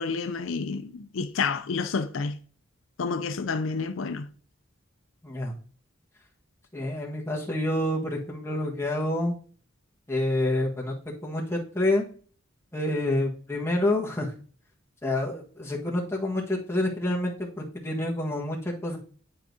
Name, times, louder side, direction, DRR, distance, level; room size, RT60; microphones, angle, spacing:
voice 1, 0.0-2.4 3.0-4.3, left 4 dB, 80° left, 0.5 m, -29 dB
voice 2, 5.2-5.5 6.7-9.3 10.1-10.9 11.2-12.0 12.7-14.3 15.0-19.0, left 1 dB, 15° left, 1.4 m, -28 dB
10.0 x 4.6 x 2.7 m
head